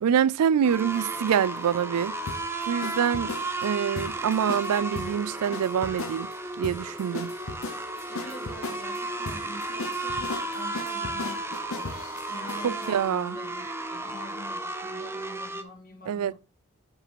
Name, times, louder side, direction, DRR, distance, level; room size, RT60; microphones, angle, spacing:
voice 1, 0.0-2.1 2.6-3.3 3.6-6.3 6.6-7.3 12.6-13.3 16.1-16.3, right 8 dB, 85° right, 0.3 m, -25 dB
sound 1, 0.6-15.6, right 2 dB, 10° right, 0.6 m, -34 dB
sound 2, 0.9-12.9, left 3 dB, 65° left, 1.0 m, -38 dB
voice 2, 8.1-16.3, equal, 40° left, 2.7 m, -45 dB
5.9 x 5.3 x 5.2 m
head